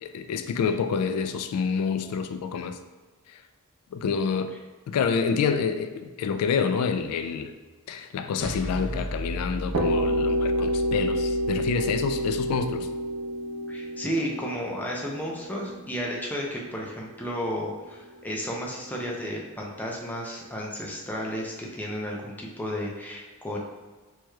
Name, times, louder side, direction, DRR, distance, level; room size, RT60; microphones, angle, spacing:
voice 1, 0.0-2.8 3.3-3.4 3.9-4.5 4.9-7.5 7.9-12.9, left 6 dB, 85° left, 9 dB, 0.3 m, -28 dB
sound 1, 8.4-13.0, equal, 50° left, 0.8 m, -35 dB
sound 2, 9.7-17.5, equal, 85° right, 0.6 m, -28 dB
voice 2, 13.7-23.6, equal, 10° left, -3 dB, 0.5 m, -33 dB
4.6 x 3.0 x 2.3 m, 1.3 s
head